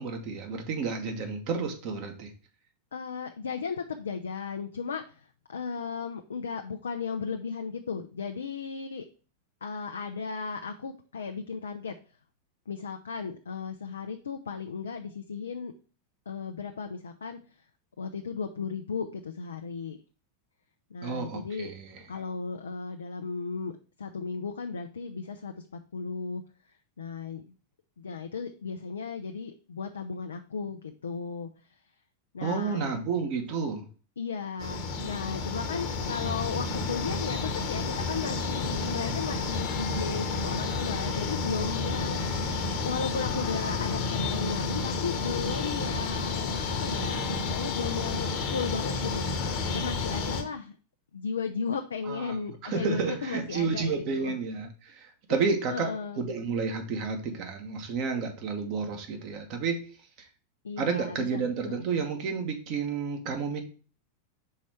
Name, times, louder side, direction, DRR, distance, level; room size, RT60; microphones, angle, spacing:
voice 1, 0.0-2.3 21.0-22.0 32.4-33.8 52.1-52.4 52.6-59.8 60.8-63.6, right 5 dB, 40° right, 5 dB, 1.3 m, -31 dB
voice 2, 2.9-9.1 9.6-12.0 12.7-15.7 16.3-17.4 18.0-20.0 20.9-21.7 22.1-23.7 24.0-26.4 27.0-27.4 28.0-31.5 32.3-33.0 34.2-49.2 49.7-50.8 51.1-54.4 55.3-55.4 55.7-56.2 60.6-61.5 61.8-61.9, left 5 dB, 70° left, 6 dB, 0.5 m, -35 dB
sound 1, 34.6-50.4, left 4 dB, 40° left, 1.1 m, -31 dB
5.6 x 4.1 x 4.7 m, 0.38 s
figure-of-eight pair, 90°, 0 cm